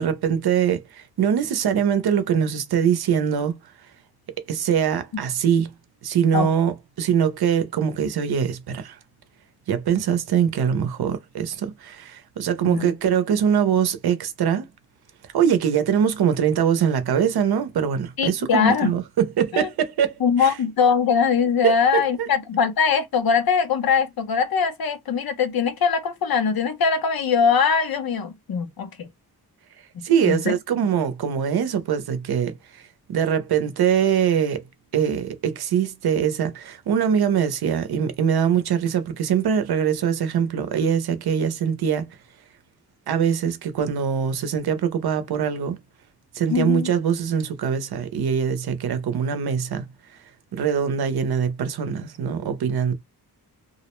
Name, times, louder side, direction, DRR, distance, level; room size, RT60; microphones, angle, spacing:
voice 1, 0.0-3.6 4.5-5.7 6.0-9.0 9.7-14.7 15.3-20.5 21.6-21.8 30.0-32.8 33.1-34.6 34.9-42.0 43.1-45.8 46.3-49.9 50.5-52.9, right 8 dB, 75° right, 0.6 m, -23 dB
voice 2, 18.2-18.9 19.5-19.7 20.2-29.1 30.2-30.6 46.5-46.9, left 6 dB, 65° left, 0.7 m, -21 dB
2.4 x 2.0 x 3.0 m
wide cardioid pair, 120°, 38 cm